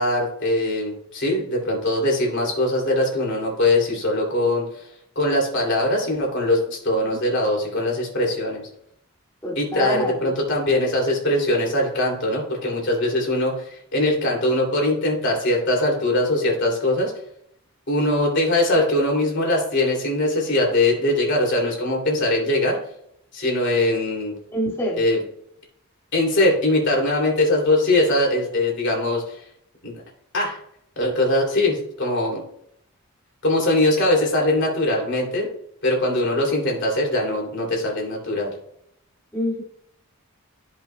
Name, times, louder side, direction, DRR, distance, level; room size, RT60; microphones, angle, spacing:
voice 1, 0.0-4.9 5.1-8.6 9.6-17.1 17.9-22.8 23.3-24.3 25.0-25.2 26.1-29.4 29.8-29.9 30.3-30.6 31.0-32.4 33.4-35.5 35.8-38.5, left 1 dB, 55° left, -1 dB, 2.8 m, -21 dB
voice 2, 9.4-10.3 24.5-25.0 39.3-39.6, equal, 10° left, -6 dB, 2.2 m, -27 dB
14.5 x 5.4 x 2.3 m, 0.72 s
head